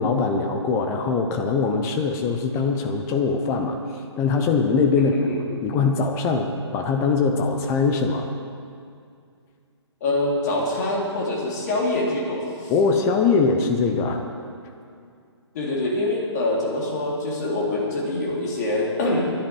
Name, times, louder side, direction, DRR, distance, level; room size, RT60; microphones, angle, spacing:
voice 1, 0.0-5.1 5.5-8.3 12.7-14.2, left 4 dB, 20° left, 5 dB, 0.9 m, -22 dB
voice 2, 4.9-5.4 10.0-12.7 15.5-19.3, left 2 dB, 35° left, -2 dB, 3.0 m, -25 dB
20.0 x 11.0 x 4.8 m, 2.3 s
figure-of-eight pair, 135°, 15 cm